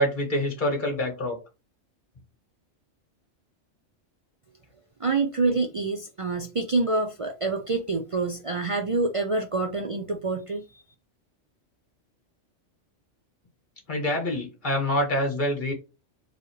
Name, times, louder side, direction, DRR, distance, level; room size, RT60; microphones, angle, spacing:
voice 1, 0.0-1.4 13.9-15.7, equal, 40° left, 2.0 m, -26 dB
voice 2, 5.0-10.8, right 3 dB, 55° right, 0.3 m, -27 dB
4.5 x 3.3 x 3.1 m
omnidirectional pair, 1.3 m